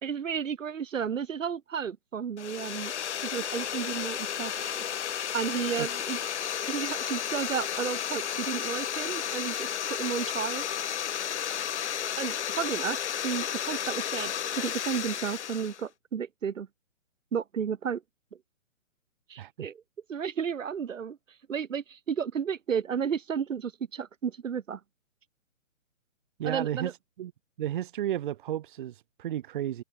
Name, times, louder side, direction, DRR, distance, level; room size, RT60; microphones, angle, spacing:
voice 1, 0.0-2.9 3.2-4.8 5.3-6.2 6.7-10.6 12.2-13.0 13.2-16.7 17.3-18.0 19.3-19.8 20.1-21.2 21.5-24.8 26.4-26.9, right 7 dB, 70° right, 2.4 m, -32 dB
sound 1, 2.4-15.8, left 9 dB, 60° left, 1.0 m, -33 dB
voice 2, 26.4-26.9 27.2-27.3 27.6-29.8, right 12 dB, 40° right, 1.5 m, -32 dB
hypercardioid pair, 150°, 40 cm